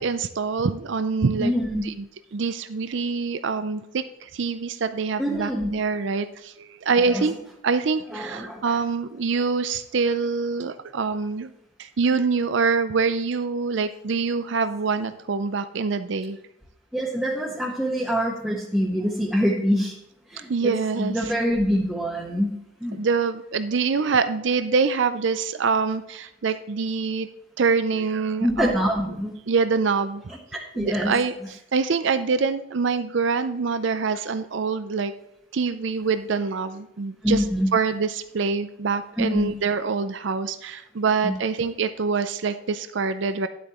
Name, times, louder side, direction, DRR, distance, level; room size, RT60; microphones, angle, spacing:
voice 1, 0.0-1.5 1.8-1.9 2.3-7.3 7.6-11.5 11.8-16.4 20.5-21.2 23.0-27.3 27.6-28.7 29.5-30.2 30.8-31.3 31.7-35.1 35.5-37.4 37.7-43.5, right 5 dB, 60° right, 11 dB, 0.5 m, -25 dB
voice 2, 1.4-1.9 5.2-5.7 7.0-7.3 8.1-8.8 16.9-19.9 20.3-22.5 22.8-23.0 28.4-29.3 30.3-30.4 30.7-31.1 37.2-37.7 39.2-39.5 41.2-41.3, equal, 5° right, -5 dB, 1.2 m, -25 dB
11.5 x 8.4 x 3.0 m, 0.83 s
head